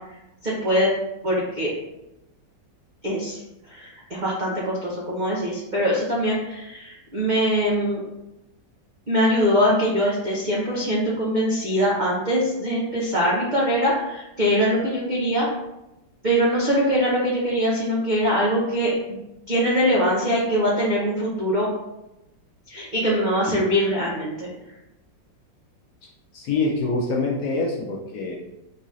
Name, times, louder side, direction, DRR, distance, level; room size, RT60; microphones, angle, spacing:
voice 1, 0.4-0.9 1.2-1.7 3.0-3.4 3.7-8.0 9.1-15.5 16.2-19.2 19.5-21.7 22.7-24.5, equal, 75° right, -5 dB, 0.4 m, -22 dB
voice 2, 26.3-28.4, left 3 dB, 70° left, -1 dB, 0.9 m, -25 dB
4.3 x 3.9 x 2.4 m, 0.91 s
omnidirectional pair, 2.0 m